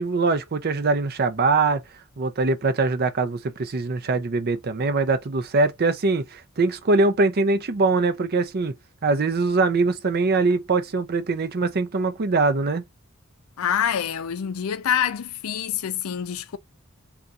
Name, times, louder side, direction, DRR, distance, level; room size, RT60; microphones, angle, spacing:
voice 1, 0.0-1.8 2.2-8.7 9.0-12.8, right 3 dB, 45° right, 0.5 m, -22 dB
voice 2, 13.6-16.6, left 9 dB, 80° left, 0.4 m, -26 dB
3.9 x 2.4 x 2.4 m
head